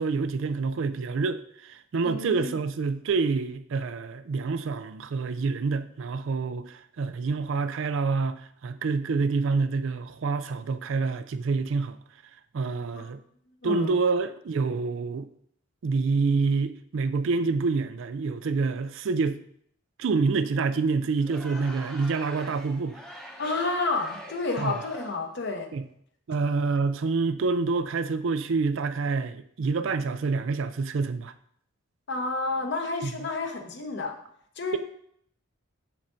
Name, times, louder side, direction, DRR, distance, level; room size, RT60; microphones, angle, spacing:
voice 1, 0.0-12.0 12.5-13.2 13.6-15.3 15.8-19.4 20.0-23.0 24.6-24.7 25.7-25.8 26.3-31.3 33.0-33.1, right 4 dB, 55° right, 0.4 m, -27 dB
voice 2, 2.0-2.6 12.9-13.1 13.6-14.0 23.4-25.7 32.1-34.2 34.6-34.8, left 3 dB, 50° left, 1.0 m, -30 dB
Crowd, 21.2-25.3, equal, 5° left, 0.8 m, -44 dB
7.4 x 7.3 x 2.6 m
head